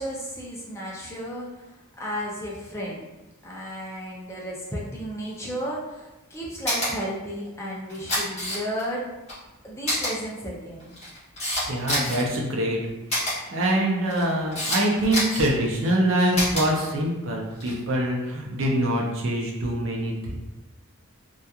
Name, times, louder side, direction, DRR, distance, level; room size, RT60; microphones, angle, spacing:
voice 1, 0.0-3.0 3.4-9.1 9.6-10.9, equal, 10° left, -5 dB, 0.5 m, -33 dB
Camera, 6.7-6.9 7.9-8.8 9.3-9.4 9.9-10.1 10.8-12.2 13.1-13.3 14.1-14.8 15.1-15.5 16.3-16.6 17.5-17.8, left 1 dB, 30° left, 1.0 m, -26 dB
voice 2, 11.7-12.8 13.2-20.3, right 1 dB, 60° right, -2 dB, 0.6 m, -24 dB
2.8 x 2.3 x 2.3 m, 1.0 s
head